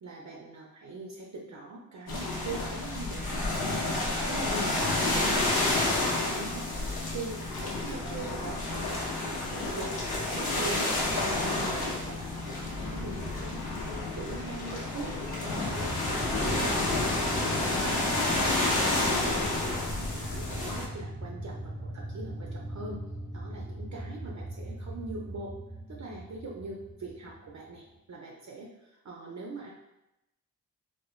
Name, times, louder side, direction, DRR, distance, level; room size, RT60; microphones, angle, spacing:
voice 1, 0.0-3.9 4.3-15.9 16.4-18.8 19.1-23.0 23.3-25.5 25.9-29.7, right 3 dB, 55° right, -2 dB, 0.5 m, -42 dB
sound 1, 2.1-20.9, left 2 dB, 85° left, 0.6 m, -30 dB
Thunder / Rain, 6.7-20.3, left 1 dB, 40° left, 0.5 m, -45 dB
sound 2, 15.6-27.8, right 1 dB, 10° left, 0.9 m, -40 dB
3.2 x 2.2 x 2.3 m, 0.92 s
cardioid pair, 45°, 35 cm